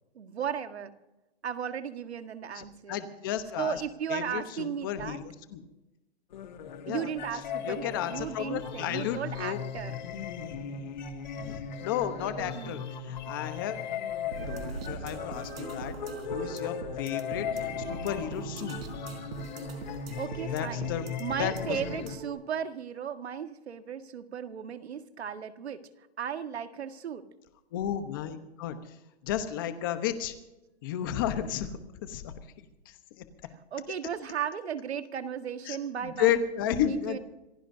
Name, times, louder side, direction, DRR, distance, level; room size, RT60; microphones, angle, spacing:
voice 1, 0.2-0.9 1.4-3.0 3.6-5.2 6.9-10.0 12.0-12.7 16.4-16.6 20.2-20.9 21.2-25.9 26.2-27.3 33.7-36.4 36.7-37.2, right 8 dB, 90° right, 8 dB, 1.7 m, -36 dB
voice 2, 2.5-3.8 4.1-5.6 6.9-7.1 7.6-9.6 11.4-13.8 14.5-15.9 16.3-18.8 20.5-21.0 21.4-21.8 27.7-28.8 29.2-30.3 30.8-32.9 35.7-37.2, left 10 dB, 20° left, 9 dB, 1.0 m, -33 dB
sound 1, 6.3-22.2, left 6 dB, 45° left, 2.1 m, -38 dB
sound 2, 14.3-22.3, right 4 dB, 70° right, 4.3 m, -41 dB
26.5 x 16.0 x 2.7 m, 0.99 s
hypercardioid pair, 175°, 31 cm